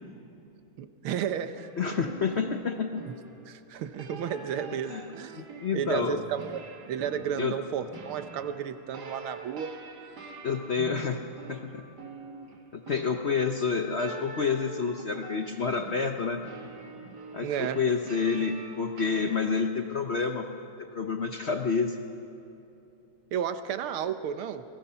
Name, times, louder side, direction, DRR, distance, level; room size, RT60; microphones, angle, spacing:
voice 1, 0.8-1.7 2.0-2.1 3.1-3.2 3.5-5.4 5.7-6.6 6.9-9.7 17.4-17.8 23.3-24.6, right 8 dB, 75° right, 10 dB, 1.8 m, -32 dB
sound 1, 1.6-19.5, right 3 dB, 50° right, 2.0 m, -45 dB
voice 2, 1.8-3.0 4.9-5.0 5.3-6.2 7.4-7.6 10.4-11.2 11.5-11.8 12.7-16.4 17.3-20.5 20.8-22.0, left 5 dB, 70° left, 5 dB, 0.6 m, -29 dB
28.5 x 19.5 x 5.7 m, 2.7 s
omnidirectional pair, 2.4 m